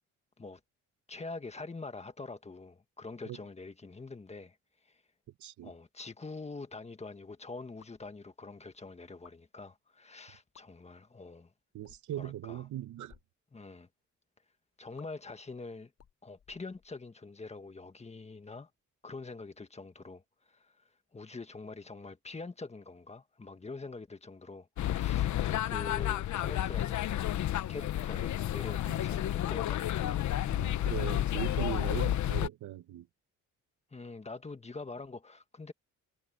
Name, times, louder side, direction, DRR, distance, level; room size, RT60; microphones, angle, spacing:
voice 1, 1.1-4.6 4.8-5.0 5.6-11.5 12.1-12.7 13.5-13.9 14.8-15.9 16.2-18.7 19.0-20.8 21.1-27.1 27.7-30.2 33.9-35.7, left 3 dB, 20° left, 1.7 m, -45 dB
voice 2, 5.4-5.7 11.7-13.1 28.9-29.1 30.5-33.1, right 12 dB, 75° right, 1.3 m, -39 dB
sound 1, 7.8-8.1 9.1-9.4 10.4-10.7 11.8-12.2 13.0-13.3 15.0-15.1 15.9-17.1, left 8 dB, 55° left, 6.1 m, -59 dB
sound 2, 24.8-32.5, left 12 dB, 70° left, 1.2 m, -31 dB
cardioid pair, 90°, 30 cm